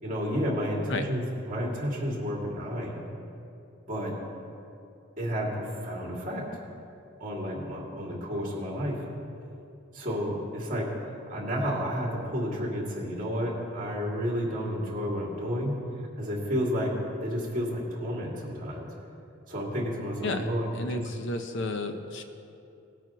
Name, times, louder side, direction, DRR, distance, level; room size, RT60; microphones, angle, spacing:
voice 1, 0.0-3.0 3.9-4.1 5.2-6.5 7.2-9.0 9.9-10.9 11.3-15.8 16.2-16.9 17.2-18.9 19.5-21.0, equal, 40° right, -3 dB, 2.4 m, -31 dB
voice 2, 20.7-22.2, left 2 dB, 60° left, 6 dB, 0.7 m, -32 dB
18.5 x 9.0 x 3.0 m, 2.7 s
head